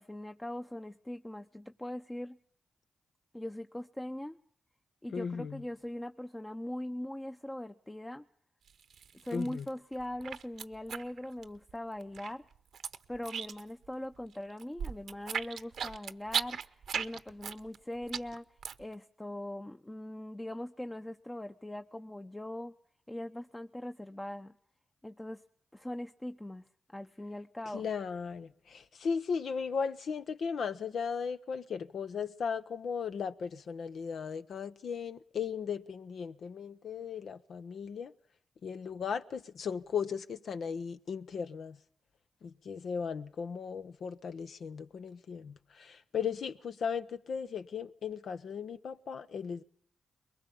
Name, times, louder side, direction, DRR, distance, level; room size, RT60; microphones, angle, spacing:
voice 1, 0.0-2.4 3.3-4.4 5.0-8.3 9.2-12.5 13.1-18.4 18.8-22.7 23.1-24.6 25.0-25.4 25.7-26.7 26.9-27.9, left 1 dB, 15° left, 0.8 m, -41 dB
voice 2, 5.1-5.6 9.3-9.7 27.7-38.1 38.6-41.8 42.4-49.6, left 6 dB, 75° left, 0.9 m, -37 dB
sound 1, 8.7-9.7 10.0-11.7 12.0-13.9 14.2-18.9, right 7 dB, 75° right, 0.9 m, -37 dB
22.0 x 21.0 x 7.0 m
supercardioid pair, 50°, 0 cm